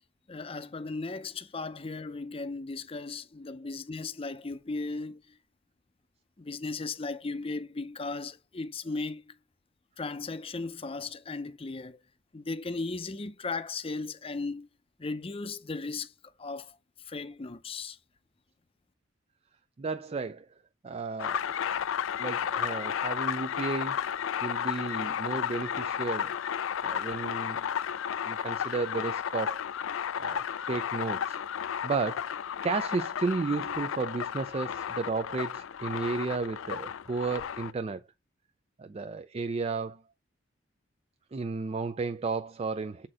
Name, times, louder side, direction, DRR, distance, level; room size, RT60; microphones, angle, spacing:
voice 1, 0.3-5.2 6.4-9.3 10.0-12.0 12.3-14.7 15.0-16.1 16.4-16.8 17.1-18.0, left 3 dB, 30° left, 0.6 m, -36 dB
voice 2, 19.8-20.5 20.8-21.4 22.2-24.1 24.4-26.3 26.8-27.7 28.2-29.6 30.2-31.4 31.8-32.3 32.6-38.0 38.8-40.0 41.3-43.1, right 4 dB, 30° right, 0.4 m, -33 dB
sound 1, 21.2-37.7, left 8 dB, 80° left, 0.4 m, -33 dB
7.5 x 4.3 x 4.9 m
head